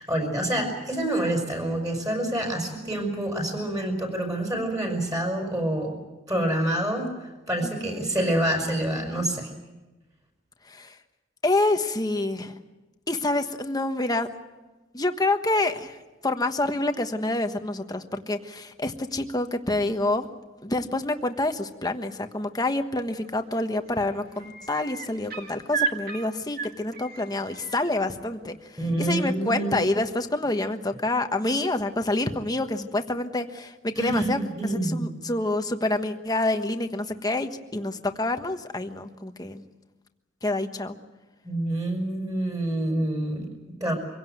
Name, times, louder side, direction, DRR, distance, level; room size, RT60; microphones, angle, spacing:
voice 1, 0.0-6.0 6.3-9.5 28.8-29.9 34.0-35.1 41.4-43.9, right 1 dB, 20° right, 2 dB, 5.7 m, -27 dB
voice 2, 7.6-8.1 10.7-10.9 11.4-12.5 13.1-14.3 14.9-16.0 16.2-20.3 20.6-28.6 29.0-39.6 40.4-41.0, left 2 dB, 20° left, 7 dB, 1.3 m, -27 dB
sound 1, 23.2-23.6 23.9-27.9 29.6-29.7, right 6 dB, 50° right, 2.2 m, -34 dB
25.0 x 17.0 x 9.2 m, 1.1 s
head